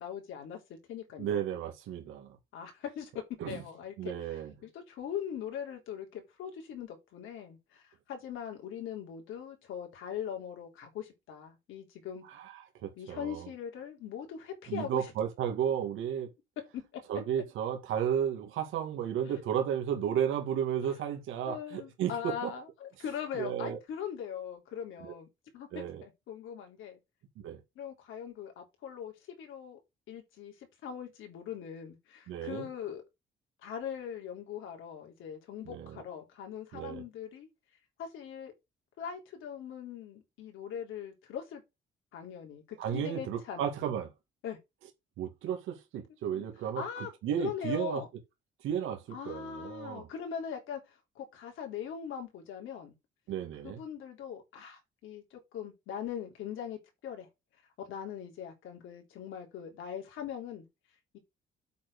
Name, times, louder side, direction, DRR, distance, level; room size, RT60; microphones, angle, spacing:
voice 1, 0.0-1.5 2.5-12.2 12.9-15.1 16.7-17.0 19.3-19.4 20.8-21.0 21.4-25.3 25.5-27.0 27.8-29.8 30.1-33.0 33.6-37.5 38.0-38.5 39.0-41.6 42.1-43.6 44.4-44.6 46.3-47.1 47.4-48.1 49.1-52.9 53.6-57.3 57.8-60.7 61.1-61.2, left 8 dB, 85° left, 3.6 m, -41 dB
voice 2, 1.2-2.3 3.4-3.6 4.0-4.5 12.3-13.5 14.7-16.3 17.1-22.1 22.4-22.5 23.4-23.8 25.0-25.1 25.7-26.0 27.4-27.6 32.3-32.7 35.7-36.0 36.7-37.0 42.8-44.1 45.2-46.8 47.2-48.0 48.6-50.1 53.3-53.8, right 9 dB, 90° right, 2.2 m, -33 dB
8.4 x 4.3 x 6.2 m
cardioid pair, 90°, 20 cm